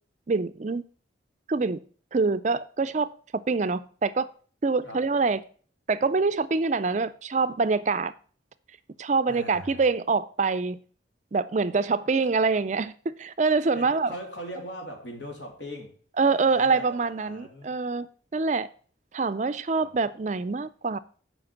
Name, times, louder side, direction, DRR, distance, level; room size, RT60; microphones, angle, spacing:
voice 1, 0.3-0.8 1.5-1.8 2.1-4.3 4.6-5.4 5.9-8.1 9.0-10.8 11.3-14.1 16.2-18.1 18.3-18.7 19.1-21.0, right 4 dB, 40° right, 0.4 m, -25 dB
voice 2, 9.3-9.8 13.7-16.0 16.2-17.7 19.7-19.9, right 1 dB, 70° left, 2.8 m, -40 dB
7.7 x 5.2 x 7.1 m
head